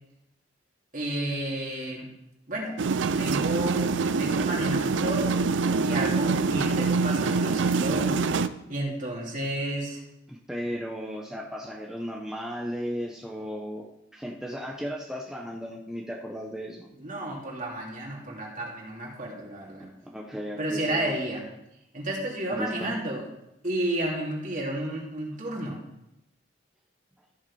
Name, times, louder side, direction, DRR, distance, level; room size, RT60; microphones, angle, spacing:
voice 1, 0.9-2.1 2.5-8.2 8.7-10.0 16.9-19.9 20.6-21.4 21.9-23.2 23.6-25.8, right 1 dB, 45° right, -2 dB, 2.8 m, -32 dB
sound 1, 2.8-8.5, right 4 dB, 85° right, 0.5 m, -25 dB
voice 2, 10.3-13.9 14.1-16.9 19.8-19.9 20.1-21.2 22.5-22.9, equal, 5° right, -1 dB, 0.9 m, -35 dB
14.0 x 6.5 x 4.9 m, 0.88 s
head